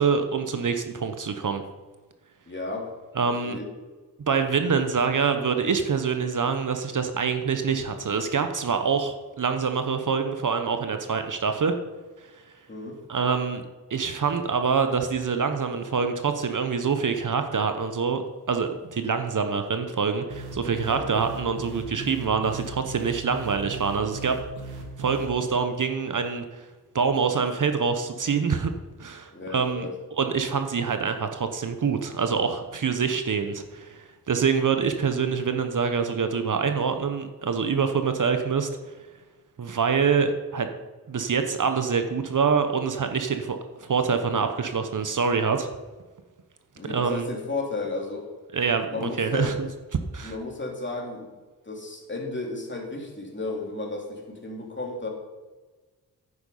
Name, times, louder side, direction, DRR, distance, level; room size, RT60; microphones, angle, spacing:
voice 1, 0.0-1.6 3.2-3.6 4.3-11.7 13.1-13.6 13.9-18.2 18.5-24.4 25.0-26.6 26.9-28.7 29.0-29.9 30.2-38.7 39.6-40.7 41.1-45.7 46.9-47.3 48.5-49.5 50.1-50.3, right 5 dB, 55° right, 7 dB, 1.0 m, -25 dB
voice 2, 2.5-2.9 3.3-3.7 12.7-13.0 20.8-21.1 29.3-30.0 46.7-48.3 48.9-49.5 50.2-51.4 51.6-55.1, left 3 dB, 30° left, 0 dB, 3.0 m, -33 dB
sound 1, 20.3-25.4, right 3 dB, 80° right, 1.8 m, -38 dB
9.9 x 8.3 x 5.5 m, 1.3 s
cardioid pair, 70°, 38 cm